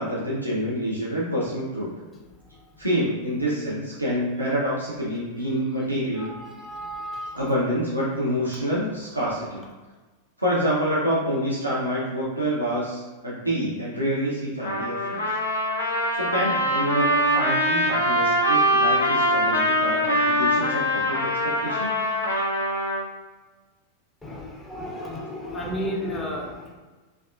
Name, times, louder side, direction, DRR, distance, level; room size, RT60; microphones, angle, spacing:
voice 1, 0.0-1.9 2.8-6.3 7.3-9.6 10.4-15.2 16.1-22.0, equal, 85° right, -7 dB, 0.5 m, -27 dB
voice 2, 6.2-7.4 24.2-26.7, equal, 15° left, -2 dB, 0.4 m, -33 dB
Trumpet, 14.6-23.0, equal, 75° left, 0.5 m, -23 dB
2.6 x 2.3 x 2.3 m, 1.3 s
figure-of-eight pair, 90°, 0 cm